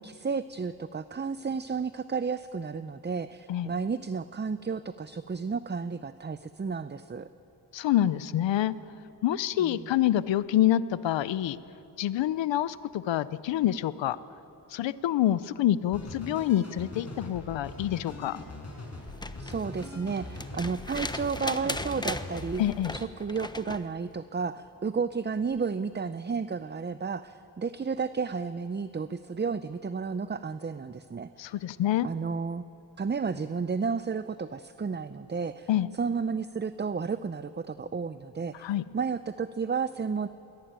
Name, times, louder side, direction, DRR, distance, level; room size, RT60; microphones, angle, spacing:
voice 1, 0.0-7.3 9.6-9.9 19.4-22.6 22.9-31.5 32.0-32.6 33.0-40.3, right 5 dB, 25° right, 13 dB, 0.6 m, -32 dB
voice 2, 7.7-8.8 9.2-11.6 12.0-14.2 14.7-18.4 22.6-22.9 31.4-32.1 35.7-35.9 38.6-38.8, left 12 dB, 90° left, 17 dB, 0.7 m, -27 dB
sound 1, 15.9-22.8, left 2 dB, 35° left, 5.6 m, -41 dB
sound 2, 19.0-23.9 25.5-25.6, left 2 dB, 10° left, 1.1 m, -38 dB
21.5 x 19.0 x 9.0 m, 2.9 s
cardioid pair, 60°, 43 cm